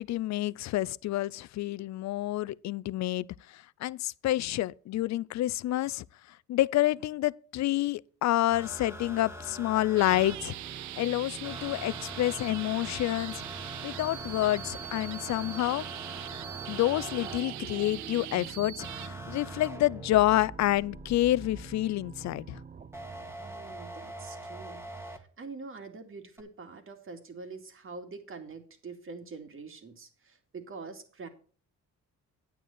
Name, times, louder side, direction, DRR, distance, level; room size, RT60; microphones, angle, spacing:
voice 1, 0.0-6.0 6.5-10.5 11.0-13.4 13.8-15.9 16.7-22.6, left 15 dB, 65° left, 0.5 m, -28 dB
sound 1, 8.5-10.4 11.4-17.4 18.8-21.8 22.9-25.2 26.4-26.5, equal, 10° right, 1.9 m, -44 dB
sound 2, 10.0-19.1, right 15 dB, 70° right, 0.5 m, -42 dB
sound 3, 10.1-24.2, right 6 dB, 25° right, 0.7 m, -46 dB
voice 2, 23.4-31.3, right 4 dB, 45° right, 2.4 m, -45 dB
9.4 x 9.2 x 4.3 m
cardioid pair, 90°, 30 cm